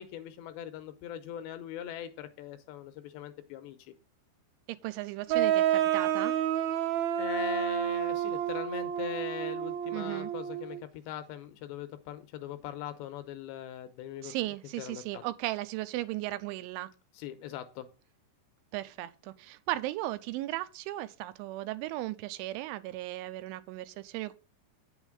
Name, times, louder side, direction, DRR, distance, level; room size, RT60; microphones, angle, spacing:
voice 1, 0.0-3.9 7.2-14.3 14.8-15.2 17.2-17.9, left 11 dB, 80° left, 2.7 m, -41 dB
voice 2, 4.7-6.3 9.9-10.3 14.2-16.9 18.7-24.3, right 16 dB, 85° right, 3.1 m, -36 dB
sound 1, 5.3-10.8, right 10 dB, 65° right, 2.9 m, -29 dB
9.1 x 7.0 x 4.8 m
omnidirectional pair, 5.4 m